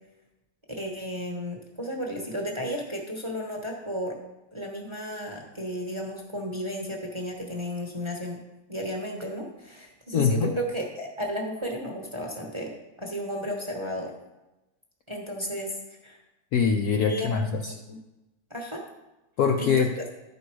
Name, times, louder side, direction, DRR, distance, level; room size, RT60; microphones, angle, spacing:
voice 1, 0.8-4.1 4.5-8.4 8.7-14.1 15.1-15.8 16.0-16.2 17.1-17.3 17.9-18.0 18.5-18.8 19.6-19.9, equal, 20° right, 1 dB, 0.9 m, -33 dB
voice 2, 10.1-10.5 16.5-17.7 19.4-19.9, left 6 dB, 70° left, 4 dB, 0.9 m, -23 dB
12.5 x 5.3 x 4.7 m, 1.0 s
omnidirectional pair, 2.1 m